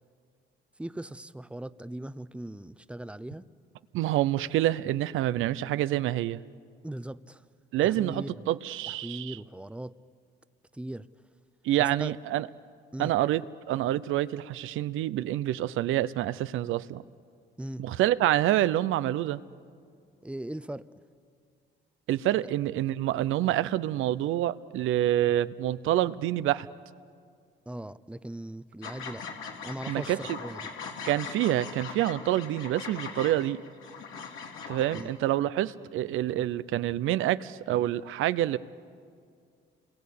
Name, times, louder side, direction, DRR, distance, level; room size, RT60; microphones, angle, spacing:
voice 1, 0.8-3.5 6.8-7.4 7.8-8.5 8.9-10.0 10.7-11.1 11.8-12.1 12.9-13.1 17.6-17.8 20.2-20.9 27.7-29.3 29.6-30.6 34.9-35.1, right 1 dB, 5° right, 15 dB, 0.7 m, -39 dB
voice 2, 3.9-6.4 7.7-9.4 11.6-12.5 13.0-13.4 13.7-17.0 17.8-19.4 22.1-26.7 29.9-30.4 31.0-33.6 34.7-38.6, right 13 dB, 85° right, 15 dB, 0.7 m, -27 dB
sound 1, 28.8-35.0, left 5 dB, 85° left, 3.0 m, -40 dB
29.0 x 22.0 x 8.6 m, 2.2 s
cardioid pair, 90°, 20 cm